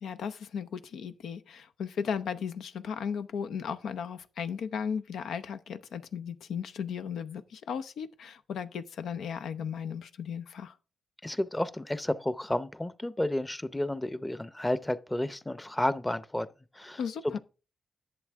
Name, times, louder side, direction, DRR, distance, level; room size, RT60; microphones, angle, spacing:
voice 1, 0.0-10.8 17.0-17.4, left 7 dB, 85° left, 0.7 m, -36 dB
voice 2, 11.2-16.5 16.7-17.4, left 1 dB, 15° left, 0.7 m, -31 dB
11.0 x 7.5 x 3.5 m
cardioid pair, 75°, 0 cm